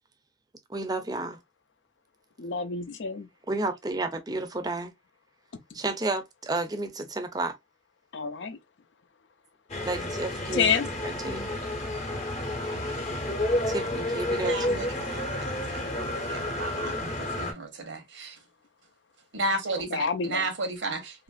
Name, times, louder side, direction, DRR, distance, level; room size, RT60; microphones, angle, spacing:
voice 1, 0.7-1.4 3.5-4.9 5.7-7.6 9.8-10.7 11.2-11.5 13.7-14.9, right 2 dB, 20° right, 0.5 m, -31 dB
voice 2, 2.4-3.3 8.1-8.6 10.5-10.9 19.8-20.5, left 6 dB, 85° left, 0.5 m, -28 dB
sound 1, 9.7-17.5, left 1 dB, 35° left, 0.7 m, -30 dB
voice 3, 14.4-18.3 19.3-21.2, right 2 dB, 85° right, 0.9 m, -34 dB
2.9 x 2.5 x 2.3 m
head